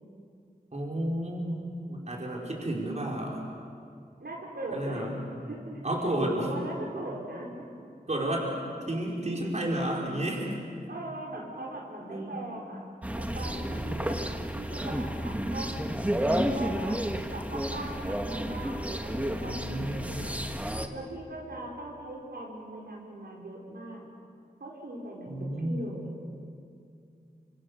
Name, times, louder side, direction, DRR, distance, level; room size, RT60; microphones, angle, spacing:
voice 1, 0.7-1.6 1.9-3.5 4.7-5.6 5.8-6.5 8.1-8.5 8.9-10.6 12.1-12.3 19.4-20.2 25.3-25.8, right 1 dB, 45° right, -2 dB, 4.9 m, -32 dB
voice 2, 4.2-5.1 5.5-5.7 6.2-7.5 10.9-12.8 13.1-17.0 17.3-20.4 20.9-24.0 24.6-26.1, right 1 dB, 80° right, -2 dB, 4.9 m, -39 dB
sound 1, 13.0-20.9, equal, 10° right, 1.6 m, -31 dB
28.0 x 26.0 x 7.0 m, 2.4 s
wide cardioid pair, 95°, 16 cm